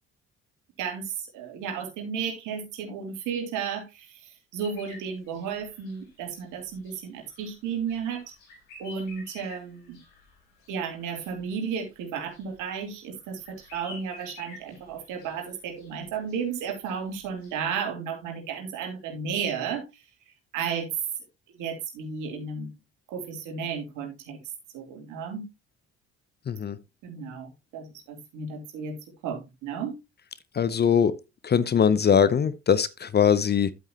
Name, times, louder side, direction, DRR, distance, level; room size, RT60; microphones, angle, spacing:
voice 1, 0.8-8.2 8.8-10.0 10.7-20.9 21.5-22.7 23.1-24.4 24.7-25.5 27.0-29.0 29.2-29.9, right 6 dB, 65° right, 3.1 m, -33 dB
sound 1, 4.6-17.8, left 2 dB, 70° left, 3.8 m, -50 dB
voice 2, 26.5-26.8 30.5-31.2 31.4-33.7, left 7 dB, 30° left, 0.7 m, -21 dB
10.5 x 8.4 x 2.9 m
figure-of-eight pair, 50°, 34 cm